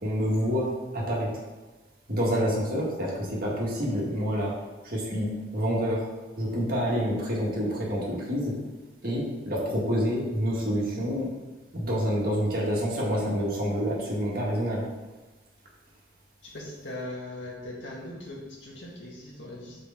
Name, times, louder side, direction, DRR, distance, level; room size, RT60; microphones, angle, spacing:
voice 1, 0.0-1.3 2.1-4.5 4.8-6.1 6.4-8.5 9.0-11.3 11.7-14.8, equal, 50° right, -5 dB, 2.0 m, -27 dB
voice 2, 16.5-19.8, left 1 dB, 75° left, -4 dB, 2.0 m, -39 dB
4.9 x 4.9 x 6.0 m, 1.2 s
head